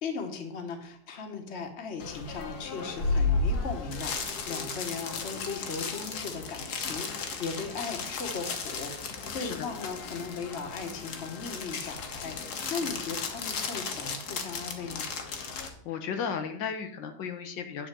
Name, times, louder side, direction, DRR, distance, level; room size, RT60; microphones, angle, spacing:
voice 1, 0.0-15.1, left 4 dB, 40° left, 5 dB, 1.4 m, -38 dB
sound 1, 2.0-15.7, left 4 dB, 65° left, 1.6 m, -34 dB
voice 2, 15.6-17.9, left 6 dB, 90° left, 6 dB, 1.7 m, -35 dB
9.7 x 4.1 x 7.5 m, 0.65 s
omnidirectional pair, 1.9 m